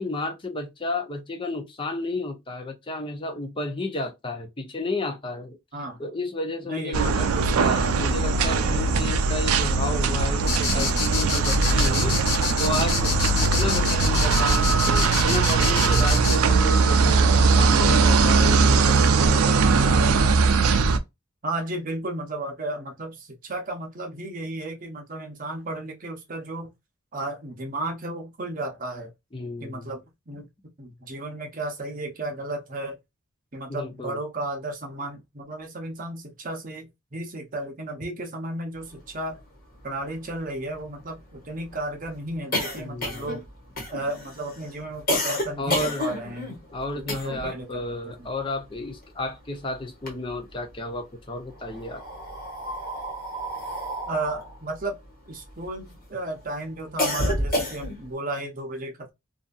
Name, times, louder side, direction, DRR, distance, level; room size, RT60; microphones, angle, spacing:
voice 1, 0.0-5.6 6.0-20.1 29.3-29.9 33.7-34.2 42.8-43.3 45.6-46.0 46.7-52.0, left 2 dB, 25° left, 0.6 m, -32 dB
voice 2, 6.6-7.8 21.4-26.7 27.1-29.1 29.6-30.5 30.8-33.0 33.5-39.4 39.8-43.4 43.9-46.5 46.9-48.3 54.1-55.0 55.3-59.1, right 2 dB, 40° right, 0.7 m, -34 dB
sound 1, 6.9-21.0, right 4 dB, 80° right, 0.4 m, -20 dB
sound 2, 10.5-16.4, left 5 dB, 90° left, 1.0 m, -27 dB
sound 3, 39.4-39.5 39.7-39.8 40.1-47.6 47.9-49.5 49.8-50.8 51.5-56.0 56.4-58.1, left 1 dB, 40° left, 1.3 m, -30 dB
2.7 x 2.6 x 2.3 m
head